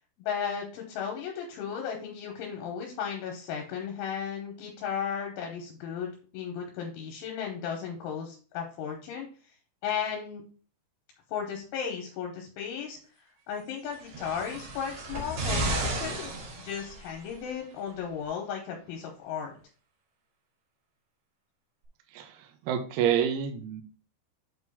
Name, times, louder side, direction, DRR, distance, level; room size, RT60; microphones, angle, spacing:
voice 1, 0.2-9.3 9.8-10.4 11.3-13.0 13.5-16.3 16.6-19.5, left 7 dB, 80° left, 1 dB, 3.4 m, -35 dB
sound 1, 13.9-17.3 18.2-18.3, right 2 dB, 55° right, 2.3 m, -33 dB
voice 2, 22.6-23.8, right 9 dB, 75° right, 4 dB, 2.3 m, -27 dB
8.0 x 3.1 x 5.5 m, 0.41 s
omnidirectional pair, 5.7 m